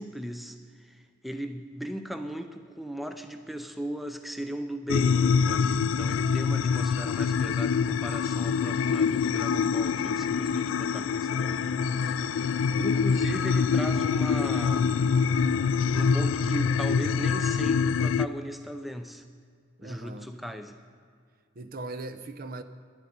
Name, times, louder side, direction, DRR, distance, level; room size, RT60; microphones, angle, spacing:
voice 1, 0.0-15.0 15.9-19.2 19.8-20.8, equal, ahead, 0.5 m, -37 dB
sound 1, 4.9-18.3, left 6 dB, 90° left, 0.3 m, -25 dB
sound 2, 9.7-17.6, equal, 35° right, 2.2 m, -48 dB
voice 2, 19.8-20.3 21.6-22.6, right 2 dB, 50° right, 0.6 m, -39 dB
10.5 x 8.2 x 9.9 m
head